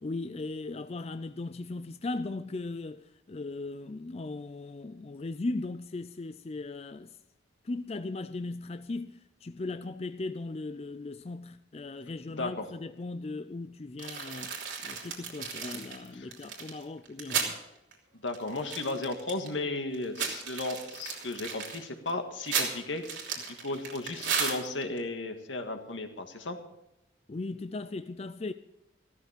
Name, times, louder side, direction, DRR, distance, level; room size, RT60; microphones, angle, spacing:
voice 1, 0.0-7.2 7.6-17.6 27.3-28.5, left 2 dB, 35° left, 0.4 m, -38 dB
voice 2, 12.3-12.7 16.1-16.3 18.2-23.0 23.5-26.6, left 2 dB, 90° left, 1.8 m, -35 dB
sound 1, 14.0-17.5 17.9-18.0 18.3-19.5 19.9-25.0, right 6 dB, 85° right, 3.0 m, -34 dB
14.5 x 13.5 x 5.2 m
head